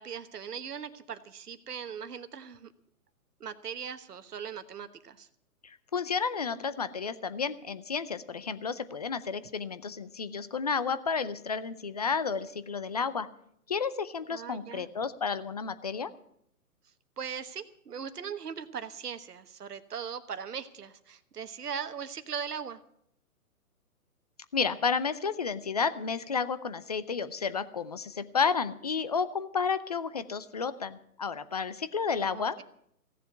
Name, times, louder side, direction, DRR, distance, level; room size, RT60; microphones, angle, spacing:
voice 1, 0.0-2.7 3.4-5.3 14.3-14.9 17.2-22.8 32.3-32.6, right 7 dB, 80° right, 11 dB, 1.3 m, -39 dB
voice 2, 5.6-13.3 13.7-16.1 24.5-32.6, left 5 dB, 30° left, 14 dB, 0.5 m, -31 dB
16.0 x 7.7 x 9.2 m, 0.72 s
hypercardioid pair, 145°, 46 cm